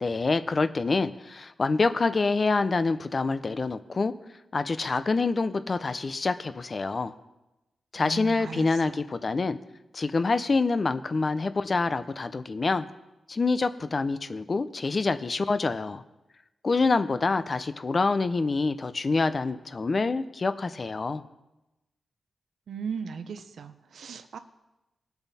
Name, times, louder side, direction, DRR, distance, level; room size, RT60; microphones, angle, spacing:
voice 1, 0.0-4.1 4.5-7.1 7.9-9.6 9.9-12.9 13.3-16.0 16.6-21.2, left 3 dB, 30° left, 12 dB, 0.5 m, -26 dB
voice 2, 8.0-9.0 22.7-24.4, right 6 dB, 65° right, 10 dB, 0.7 m, -37 dB
20.5 x 6.9 x 4.2 m, 0.98 s
wide cardioid pair, 170°, 0 cm